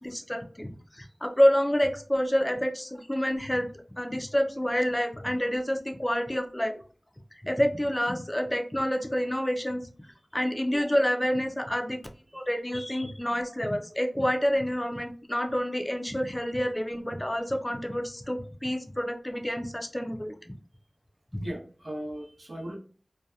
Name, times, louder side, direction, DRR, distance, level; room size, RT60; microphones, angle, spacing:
voice 1, 0.0-6.7 7.4-10.1 10.3-12.0 12.3-20.4 21.3-21.4, equal, 20° left, 4 dB, 0.4 m, -28 dB
voice 2, 21.4-22.7, right 1 dB, 85° right, -4 dB, 0.8 m, -38 dB
2.7 x 2.2 x 2.2 m, 0.41 s
wide cardioid pair, 55°, 0 cm